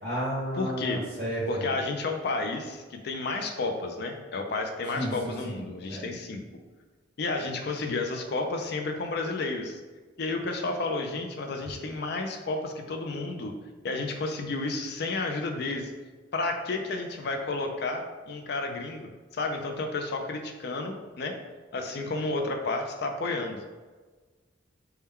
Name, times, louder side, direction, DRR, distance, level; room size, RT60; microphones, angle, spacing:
voice 1, 0.0-1.7 4.9-5.6 5.9-6.0, right 1 dB, 55° right, -8 dB, 1.5 m, -32 dB
voice 2, 0.5-1.0 1.5-6.4 7.2-9.8 10.2-13.5 13.8-15.9 16.3-21.4 21.7-23.6, left 3 dB, 55° left, 4 dB, 0.4 m, -31 dB
3.6 x 2.2 x 4.2 m, 1.3 s
head